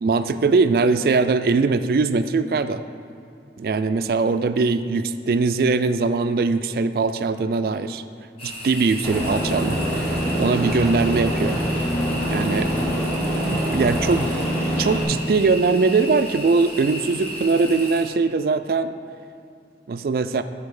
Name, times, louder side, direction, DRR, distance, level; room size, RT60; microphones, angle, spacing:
voice 1, 0.0-2.8 3.6-8.0 8.4-10.1 10.3-11.6 12.3-12.7 13.7-14.3 14.8-18.9 19.9-20.4, right 4 dB, 55° right, 11 dB, 0.3 m, -21 dB
sound 1, 8.4-18.0, equal, 35° left, 1.2 m, -35 dB
Aircraft, 9.0-15.0, equal, 10° left, 1.2 m, -24 dB
9.1 x 5.1 x 4.8 m, 2.5 s
head